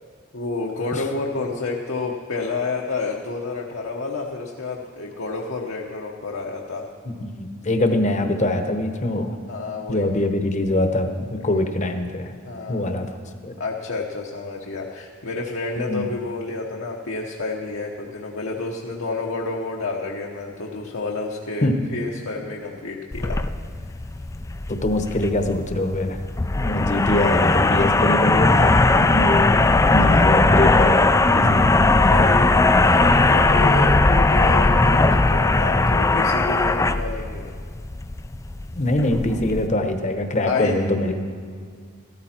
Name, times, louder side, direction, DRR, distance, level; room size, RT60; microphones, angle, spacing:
voice 1, 0.3-6.9 9.5-10.0 11.4-11.5 12.4-12.9 13.6-23.4 32.1-37.5 40.4-40.8, left 3 dB, 65° left, -1 dB, 1.0 m, -29 dB
voice 2, 7.0-9.4 9.9-12.3 12.7-13.2 13.4-13.5 15.8-16.0 21.6-21.7 24.7-26.2 26.5-29.6 29.9-31.6 38.8-41.1, left 1 dB, 35° left, 6 dB, 0.9 m, -23 dB
sound 1, 23.1-39.7, left 2 dB, 15° left, 0.3 m, -18 dB
14.0 x 13.5 x 4.4 m, 2.1 s
head